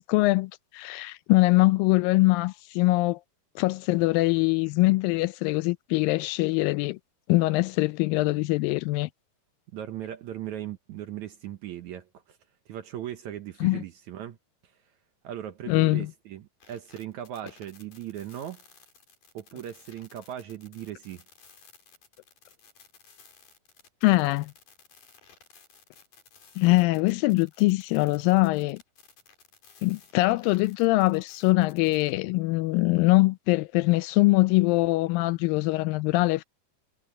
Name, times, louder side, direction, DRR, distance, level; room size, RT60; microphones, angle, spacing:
voice 1, 0.0-3.2 3.6-7.0 7.3-9.1 13.6-13.8 15.7-16.1 24.0-24.5 26.6-28.8 29.8-36.4, left 21 dB, 85° left, 2.0 m, -23 dB
voice 2, 9.7-12.4 12.7-14.4 14.6-14.8 15.2-18.6 19.3-21.2, right 11 dB, 75° right, 1.8 m, -38 dB
sound 1, 16.6-32.2, left 5 dB, 55° left, 5.9 m, -56 dB
omnidirectional pair, 4.6 m